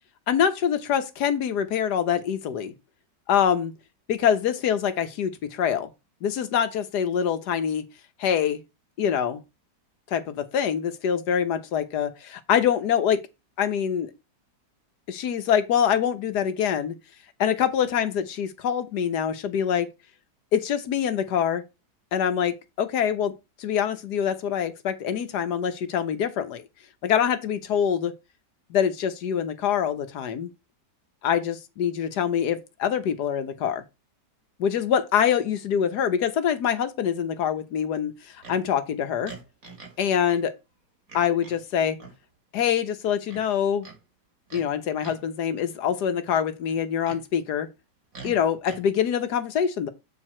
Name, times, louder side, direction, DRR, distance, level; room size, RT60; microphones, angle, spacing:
voice 1, 0.3-2.7 3.3-3.7 4.1-5.9 6.2-7.8 8.2-8.6 9.0-9.4 10.1-13.2 13.6-14.1 15.1-16.9 17.4-19.9 20.5-21.6 22.1-23.3 23.6-26.6 27.0-28.1 28.7-30.5 31.2-33.8 34.6-39.3 40.0-40.5 41.1-42.0 42.5-43.9 44.5-47.7 48.2-49.9, left 8 dB, 70° left, 1.5 m, -25 dB
Livestock farm animals working animals, 38.4-38.6 39.2-40.0 40.3-40.4 41.1-41.6 42.0-42.2 43.3-44.0 44.5-44.7 45.0-45.3 46.7-47.2 48.1-48.8, right 4 dB, 55° right, 2.6 m, -44 dB
8.0 x 4.6 x 4.3 m
omnidirectional pair, 1.8 m